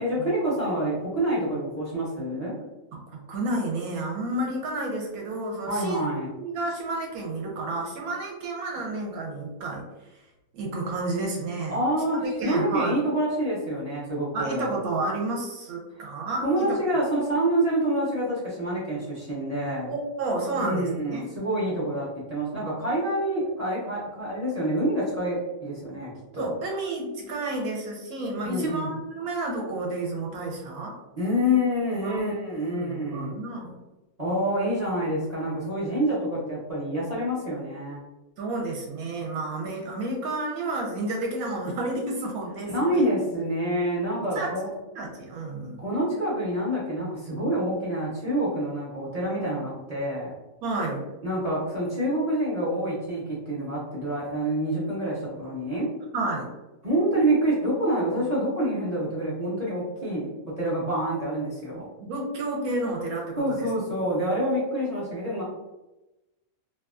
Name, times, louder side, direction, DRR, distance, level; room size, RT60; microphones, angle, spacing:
voice 1, 0.0-2.6 5.7-6.3 11.7-14.7 15.9-16.0 16.4-19.9 20.5-26.5 28.4-28.9 31.2-33.4 34.2-38.0 42.7-44.7 45.8-50.3 51.2-55.9 56.8-61.9 63.4-65.4, right 1 dB, 40° right, -8 dB, 0.5 m, -27 dB
voice 2, 2.9-6.1 6.4-9.8 10.5-11.8 12.2-13.0 14.3-16.8 19.9-21.3 26.4-31.0 32.0-32.3 32.7-33.7 38.4-43.1 44.3-44.5 44.9-45.8 50.6-51.1 56.1-56.5 61.8-63.7, right 2 dB, 70° right, 0 dB, 1.0 m, -31 dB
2.7 x 2.2 x 2.3 m, 1.0 s
omnidirectional pair, 1.7 m